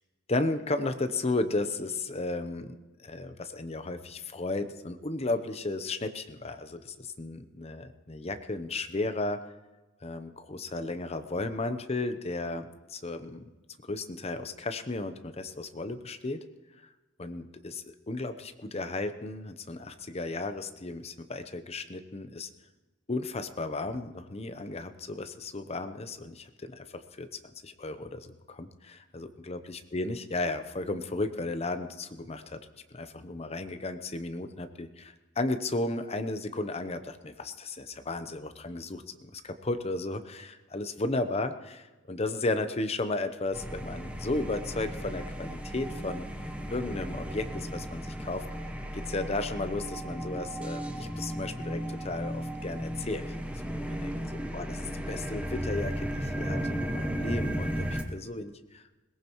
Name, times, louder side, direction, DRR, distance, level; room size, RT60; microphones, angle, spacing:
voice 1, 0.3-2.8 3.0-9.4 10.0-13.4 13.9-16.4 16.8-16.9 17.2-22.5 23.1-27.3 27.6-32.6 32.9-46.3 46.7-48.4 48.9-53.4 53.7-54.8 55.1-59.0, left 2 dB, 30° left, 9 dB, 0.8 m, -34 dB
sound 1, 43.5-58.0, equal, 5° right, 1.0 m, -35 dB
21.0 x 18.0 x 3.1 m, 1.2 s
head